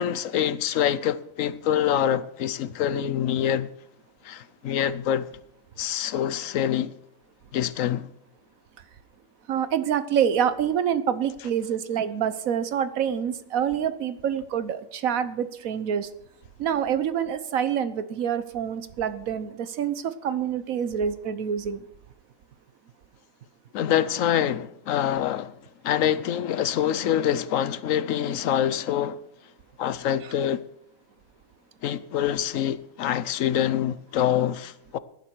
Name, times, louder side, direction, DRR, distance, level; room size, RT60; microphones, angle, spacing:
voice 1, 0.0-3.7 4.2-5.3 5.8-7.0 7.5-8.1 23.7-25.6 25.8-29.2 29.8-30.6 31.8-35.0, left 10 dB, 75° left, 1.1 m, -25 dB
voice 2, 9.5-16.1 16.6-21.8, right 8 dB, 85° right, 1.3 m, -26 dB
18.0 x 9.9 x 4.6 m
omnidirectional pair, 1.4 m